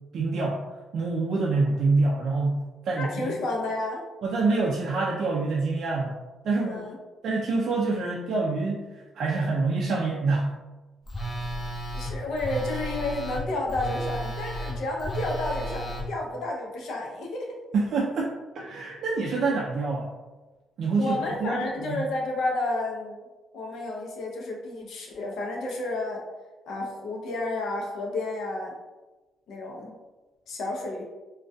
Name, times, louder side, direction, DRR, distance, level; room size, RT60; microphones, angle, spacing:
voice 1, 0.1-0.6 0.9-3.3 4.2-6.2 6.4-6.9 7.2-10.5 17.7-20.1 20.8-22.0, right 3 dB, 65° right, -3 dB, 0.3 m, -26 dB
voice 2, 3.0-4.0 6.6-7.0 11.9-17.5 21.0-23.2 23.5-26.2 26.7-28.8 29.5-30.0 30.5-31.0, left 2 dB, 75° left, 0 dB, 0.5 m, -31 dB
Telephone, 11.1-16.0, right 1 dB, 30° left, 0.6 m, -33 dB
2.2 x 2.2 x 2.5 m, 1.2 s
cardioid pair, 90°, 0 cm